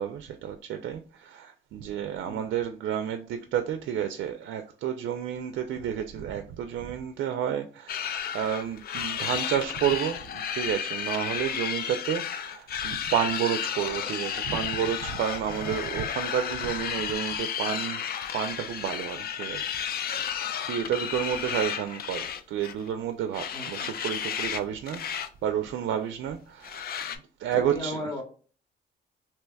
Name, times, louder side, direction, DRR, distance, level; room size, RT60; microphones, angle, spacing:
voice 1, 0.0-18.0 18.3-19.7 20.0-20.3 20.7-26.8 27.1-28.1, right 9 dB, 70° right, 0.4 m, -31 dB
sound 1, 7.9-22.9 23.3-24.6 24.9-25.3 25.6-25.7 26.6-27.2, left 8 dB, 50° left, 0.4 m, -33 dB
voice 2, 27.5-28.2, left 1 dB, 20° left, 1.0 m, -35 dB
3.2 x 2.9 x 2.2 m
cardioid pair, 90°, 20 cm